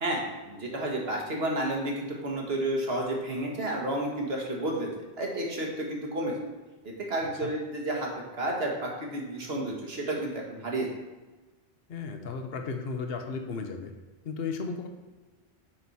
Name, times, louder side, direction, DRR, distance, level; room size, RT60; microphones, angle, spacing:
voice 1, 0.0-4.9 5.2-6.3 6.8-10.9, right 1 dB, 70° right, -1 dB, 1.8 m, -31 dB
voice 2, 11.9-13.9 14.2-14.9, left 4 dB, 65° left, 4 dB, 1.1 m, -34 dB
7.4 x 6.2 x 4.1 m, 1.2 s
omnidirectional pair, 1.1 m